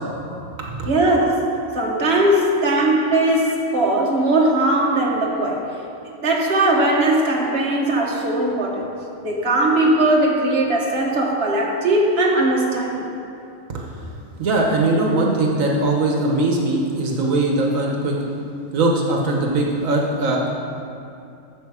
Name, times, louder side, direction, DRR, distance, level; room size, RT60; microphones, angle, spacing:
voice 1, 0.9-1.5 1.7-5.8 6.2-8.9 9.2-13.0, right 1 dB, 50° right, -2 dB, 1.5 m, -19 dB
voice 2, 13.7-14.0 14.4-18.2 18.7-20.5, right 2 dB, 80° right, -1 dB, 1.4 m, -20 dB
11.5 x 7.2 x 4.9 m, 2.6 s
omnidirectional pair, 1.4 m